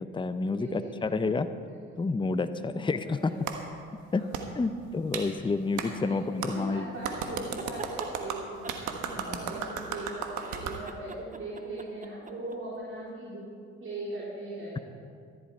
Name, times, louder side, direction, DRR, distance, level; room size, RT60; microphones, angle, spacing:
voice 1, 0.0-1.5 2.0-3.3 4.1-4.2 4.5-6.8 9.3-9.4, left 3 dB, 15° left, 11 dB, 0.7 m, -29 dB
voice 2, 0.6-1.1 1.7-1.8 2.5-3.6 4.1-4.6 6.0-13.4 13.8-14.8, right 1 dB, 45° right, -7 dB, 3.7 m, -40 dB
Clapping, 3.5-3.6 4.3-4.4 5.1-5.3 5.8-5.9 6.4-6.5 7.0-10.8, right 7 dB, 75° right, 1.3 m, -34 dB
sound 1, 7.4-8.1 8.6-10.0 10.4-12.6, right 4 dB, 25° right, 1.1 m, -44 dB
14.0 x 11.5 x 4.6 m, 2.2 s
hypercardioid pair, 55°, 31 cm